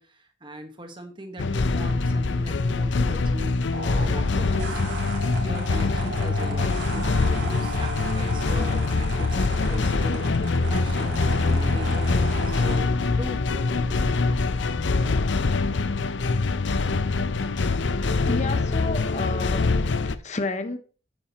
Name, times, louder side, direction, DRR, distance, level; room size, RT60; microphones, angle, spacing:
voice 1, 0.0-3.6 4.0-4.9 5.4-10.3 10.7-12.1 12.5-14.4, equal, 25° right, 1.4 m, -39 dB
sound 1, 1.4-20.2, left 3 dB, 70° left, 0.6 m, -24 dB
sound 2, 3.7-12.7, right 2 dB, 70° right, 2.8 m, -36 dB
voice 2, 18.3-19.7 20.2-20.8, left 2 dB, 35° left, 0.8 m, -30 dB
10.5 x 8.9 x 3.0 m
head